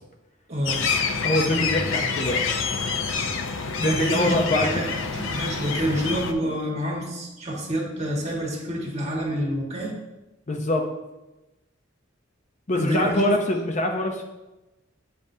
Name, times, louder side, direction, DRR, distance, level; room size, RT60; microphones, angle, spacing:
voice 1, 0.5-0.8 3.8-9.9 12.8-13.3, equal, 35° right, -3 dB, 1.6 m, -28 dB
sound 1, 0.7-6.3, left 5 dB, 75° left, 0.6 m, -27 dB
voice 2, 1.2-2.4 3.8-4.7 10.5-10.9 12.7-14.2, left 1 dB, 35° left, 3 dB, 0.6 m, -24 dB
9.1 x 5.4 x 2.7 m, 1.0 s
head